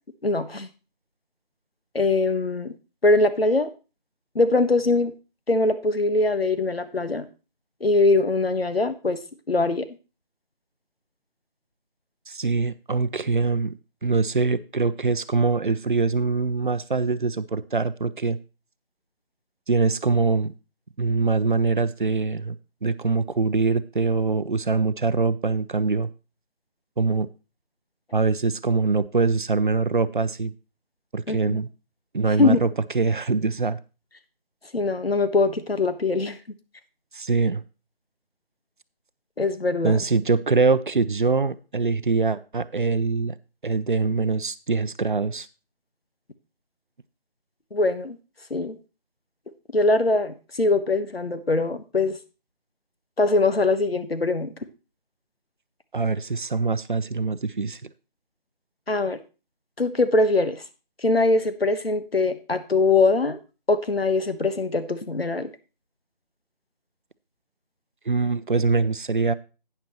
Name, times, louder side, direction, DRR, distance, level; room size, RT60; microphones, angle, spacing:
voice 1, 0.2-0.7 1.9-2.7 3.0-3.7 4.3-5.1 5.5-7.3 7.8-9.2 9.5-9.9 31.3-31.6 32.4-32.7 34.7-36.4 39.4-40.0 47.7-48.2 48.5-48.8 49.7-52.2 53.2-54.5 58.9-59.2 59.8-60.6 61.0-63.4 63.7-65.5, left 3 dB, 90° left, 10 dB, 1.4 m, -22 dB
voice 2, 12.3-13.7 14.0-18.4 19.7-20.5 21.0-22.6 22.8-26.1 27.0-27.3 28.1-30.5 31.1-31.7 32.1-32.7 32.9-33.8 37.1-37.6 39.8-43.3 43.6-45.5 55.9-57.9 68.1-69.3, right 4 dB, 60° right, 16 dB, 0.6 m, -23 dB
11.5 x 9.3 x 3.0 m, 0.32 s
figure-of-eight pair, 170°, 29 cm